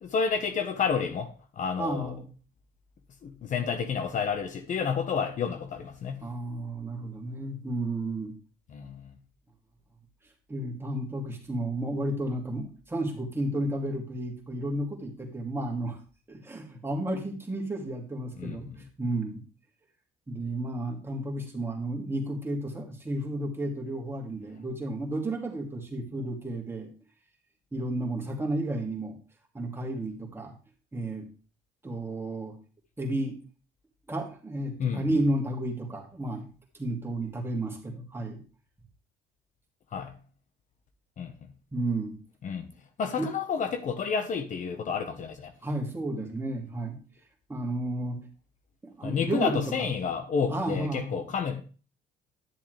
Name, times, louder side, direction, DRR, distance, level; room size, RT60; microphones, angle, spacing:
voice 1, 0.0-2.1 3.2-6.3 8.7-9.1 18.4-18.6 34.8-35.2 39.9-40.2 41.2-41.3 42.4-42.7 43.0-45.5 49.0-51.6, left 6 dB, 50° left, 1.1 m, -30 dB
voice 2, 1.8-2.3 6.2-8.3 10.5-16.0 16.3-18.7 19.0-19.4 20.3-26.9 27.7-29.2 29.5-30.5 30.9-31.3 31.8-32.6 33.0-33.4 34.1-36.4 36.7-38.4 41.7-42.2 43.2-43.3 45.6-47.0 47.5-48.2 48.8-49.9 50.5-51.2, right 1 dB, 15° right, 2.5 m, -32 dB
11.0 x 7.0 x 3.3 m
cardioid pair, 110°, 17 cm